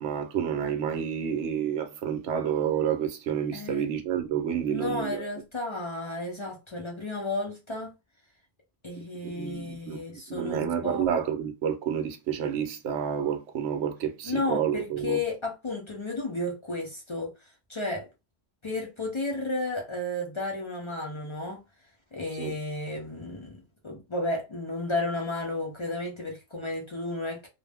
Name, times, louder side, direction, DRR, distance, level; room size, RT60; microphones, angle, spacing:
voice 1, 0.0-5.3 9.2-15.2 22.4-22.5, right 8 dB, 70° right, 0.8 m, -29 dB
voice 2, 3.5-3.9 4.7-7.9 8.8-11.1 14.2-17.3 17.7-18.1 18.6-21.6 22.1-27.5, left 2 dB, 50° left, 0.3 m, -33 dB
2.5 x 2.1 x 3.3 m
omnidirectional pair, 1.3 m